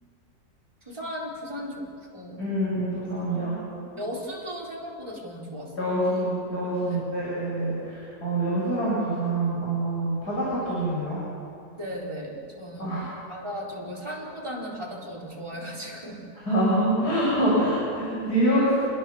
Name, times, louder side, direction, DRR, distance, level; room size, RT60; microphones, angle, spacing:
voice 1, 0.8-1.8 2.1-2.4 3.3-5.7 6.8-7.1 11.8-13.0 13.3-16.2, equal, 15° right, -4 dB, 4.3 m, -36 dB
voice 2, 2.4-3.6 5.8-11.2 12.8-13.0 16.4-18.7, right 1 dB, 90° left, -7 dB, 7.7 m, -25 dB
28.0 x 21.5 x 7.2 m, 2.6 s
omnidirectional pair, 1.7 m